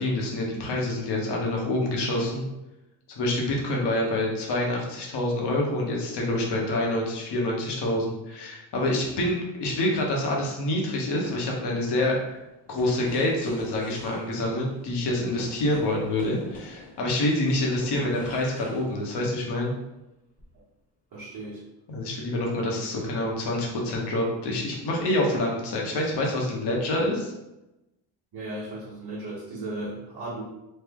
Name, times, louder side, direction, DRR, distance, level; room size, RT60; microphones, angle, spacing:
voice 1, 0.0-2.4 3.2-12.4 12.7-19.7 21.9-27.3, left 1 dB, 60° left, -1 dB, 1.1 m, -27 dB
sound 1, 11.2-19.6 20.4-20.6, left 2 dB, 20° left, 1.0 m, -47 dB
voice 2, 21.1-21.6 28.3-30.4, right 2 dB, 50° right, -8 dB, 1.1 m, -36 dB
3.2 x 2.1 x 3.5 m, 0.95 s
cardioid pair, 110°, 46 cm